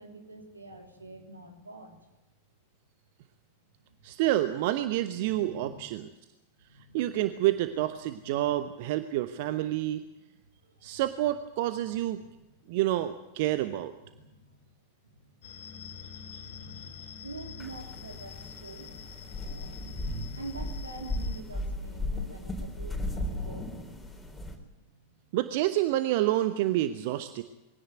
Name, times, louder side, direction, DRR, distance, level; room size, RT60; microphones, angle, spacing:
voice 1, 0.0-2.1 3.9-4.2 5.2-5.9 6.6-7.0 7.7-7.8 8.1-8.5 10.6-11.0 12.2-12.3 13.4-14.7 15.2-18.9 19.3-25.4, right 2 dB, 80° right, 4 dB, 3.5 m, -47 dB
voice 2, 4.0-6.0 6.9-10.0 10.8-12.2 12.7-13.9 16.3-16.4 25.3-27.4, right 14 dB, 50° right, 11 dB, 1.0 m, -28 dB
sound 1, 15.4-21.4, left 7 dB, 60° left, 2.7 m, -46 dB
sound 2, 17.6-24.6, left 1 dB, 5° left, 4.0 m, -36 dB
22.5 x 17.0 x 9.2 m, 1.0 s
figure-of-eight pair, 90°, 0 cm